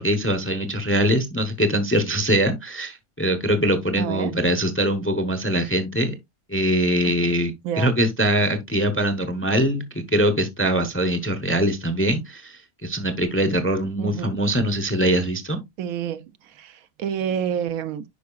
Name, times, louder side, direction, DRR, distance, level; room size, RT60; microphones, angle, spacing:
voice 1, 0.0-6.1 6.5-7.5 7.8-15.6, equal, 10° left, 0.6 m, -22 dB
voice 2, 4.0-4.3 7.0-7.1 7.6-7.9 14.0-14.4 15.8-18.0, right 8 dB, 75° right, 1.0 m, -28 dB
10.5 x 4.6 x 2.3 m
omnidirectional pair, 1.5 m